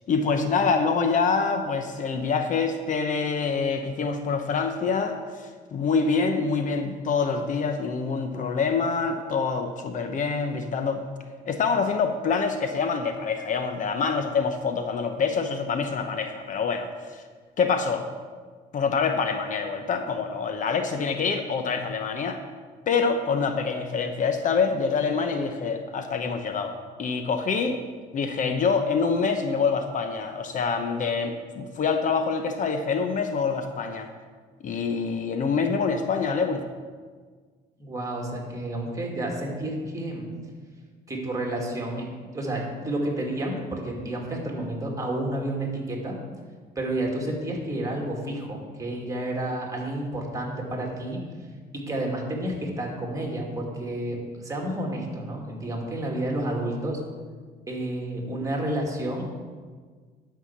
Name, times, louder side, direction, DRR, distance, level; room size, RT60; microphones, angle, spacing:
voice 1, 0.1-11.0 11.5-17.2 17.6-18.1 18.7-22.4 22.9-27.8 28.1-34.1 34.6-36.6, left 5 dB, 50° left, 7 dB, 0.9 m, -26 dB
voice 2, 37.8-40.2 41.1-42.1 42.3-46.2 46.8-51.2 51.7-57.0 57.7-59.3, right 1 dB, 20° right, 0 dB, 2.5 m, -30 dB
11.0 x 5.7 x 7.3 m, 1.5 s
cardioid pair, 110°, 17 cm